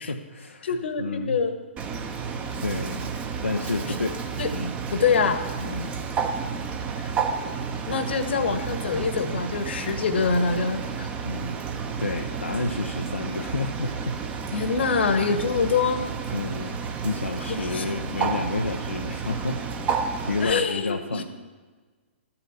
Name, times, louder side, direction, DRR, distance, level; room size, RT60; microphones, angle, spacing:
voice 1, 0.0-1.4 2.0-2.1 2.6-3.1 3.4-4.2 4.5-4.7 5.6-5.9 11.2-11.6 12.0-14.2 14.9-15.4 16.3-19.6 19.9-21.2, left 3 dB, 90° left, 2 dB, 0.8 m, -30 dB
voice 2, 0.6-1.5 4.4-4.5 4.9-5.4 7.0-7.1 7.9-11.1 14.5-16.0 17.5-17.8 20.4-21.2, left 5 dB, 60° left, 8 dB, 1.4 m, -25 dB
Bird, 1.8-20.5, right 5 dB, 20° right, 1.0 m, -31 dB
13.0 x 7.1 x 7.1 m, 1.4 s
figure-of-eight pair, 120°, 7 cm